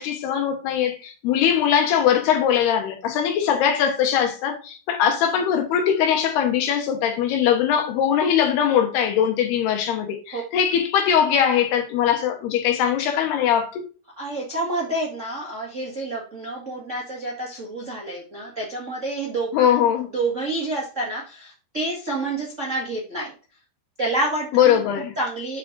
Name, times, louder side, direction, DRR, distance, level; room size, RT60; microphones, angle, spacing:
voice 1, 0.0-13.8 19.5-20.1 24.5-25.1, left 9 dB, 85° left, 3.2 m, -21 dB
voice 2, 14.2-19.8 20.1-23.3 24.0-24.8 25.2-25.6, right 2 dB, 50° right, 0.8 m, -28 dB
7.9 x 5.3 x 3.7 m
omnidirectional pair, 4.5 m